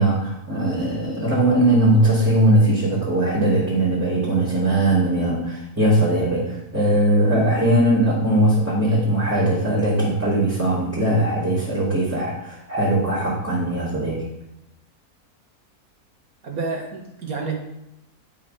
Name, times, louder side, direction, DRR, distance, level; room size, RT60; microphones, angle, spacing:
voice 1, 0.0-14.2, right 1 dB, 10° right, -10 dB, 3.0 m, -20 dB
voice 2, 16.4-17.5, right 4 dB, 70° right, 0 dB, 2.2 m, -29 dB
10.5 x 5.5 x 5.6 m, 0.88 s
omnidirectional pair, 1.6 m